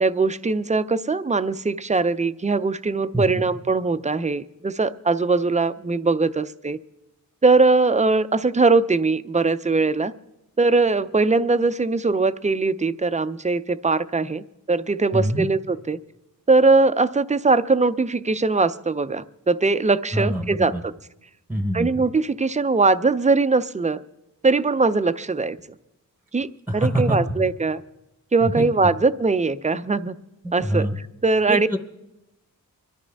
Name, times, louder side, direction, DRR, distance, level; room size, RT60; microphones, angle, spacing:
voice 1, 0.0-6.8 7.4-10.1 10.6-16.0 16.5-20.9 21.7-24.0 24.4-25.6 26.3-26.5 26.7-27.8 28.3-30.2 30.5-30.9 31.2-31.7, right 3 dB, 20° right, 13 dB, 0.4 m, -21 dB
voice 2, 3.1-3.5 15.1-15.5 20.1-20.8 21.5-22.0 26.7-27.2 28.4-28.6 30.4-31.0 31.5-31.8, right 1 dB, 5° right, 6 dB, 0.9 m, -25 dB
25.0 x 12.5 x 3.4 m, 0.91 s
wide cardioid pair, 150°, 36 cm